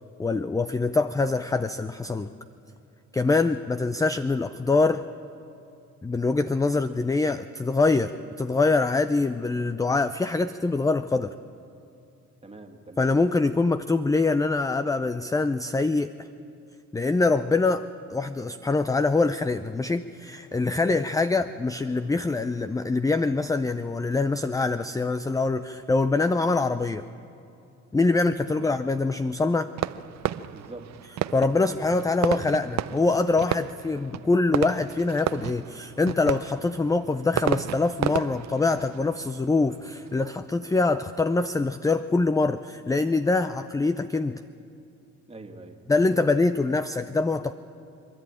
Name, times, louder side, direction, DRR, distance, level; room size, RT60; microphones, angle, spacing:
voice 1, 0.2-2.3 3.1-5.0 6.0-8.1 8.4-11.3 13.0-16.3 16.9-17.8 18.1-27.0 27.9-29.7 31.3-44.4 45.9-47.5, left 3 dB, 10° left, 12 dB, 0.5 m, -24 dB
voice 2, 12.4-13.2 28.5-28.7 30.5-31.0 45.3-45.8, right 2 dB, 20° right, 4 dB, 2.0 m, -44 dB
Fireworks, 29.8-40.3, right 12 dB, 65° right, 0.6 m, -33 dB
26.0 x 11.5 x 9.0 m, 2.6 s
cardioid pair, 90°, 30 cm